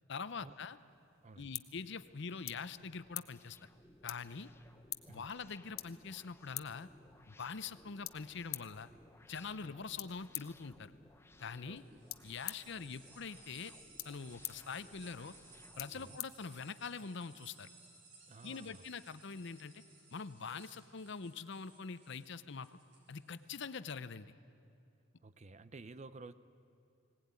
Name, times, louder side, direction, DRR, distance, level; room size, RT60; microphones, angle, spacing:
voice 1, 0.1-0.8 1.4-3.7 4.0-4.5 5.1-6.9 7.3-8.9 9.3-10.9 11.4-11.8 12.2-13.7 14.0-15.3 15.8-17.7 18.4-19.8 20.1-22.8 23.1-24.3, left 5 dB, 60° left, 14 dB, 0.7 m, -44 dB
sound 1, 0.8-17.1, left 16 dB, 90° left, 0.8 m, -50 dB
sound 2, 1.1-16.2, left 2 dB, 10° left, 0.7 m, -63 dB
voice 2, 11.7-12.0 15.9-16.2 18.3-18.9 25.2-26.3, right 3 dB, 35° right, 14 dB, 0.6 m, -53 dB
sound 3, 11.8-23.7, right 3 dB, 55° right, 4.5 m, -60 dB
19.5 x 18.5 x 9.6 m, 2.6 s
head